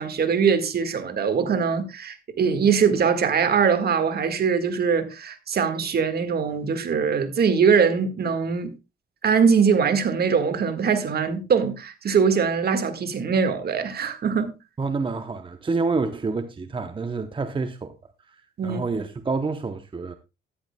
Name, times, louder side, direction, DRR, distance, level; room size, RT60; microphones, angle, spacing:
voice 1, 0.0-8.7 9.2-14.5 18.6-18.8, right 6 dB, 50° right, 1.8 m, -22 dB
voice 2, 14.8-17.9 18.3-20.1, right 4 dB, 25° right, 0.8 m, -28 dB
13.0 x 10.5 x 2.3 m
cardioid pair, 90°, 20 cm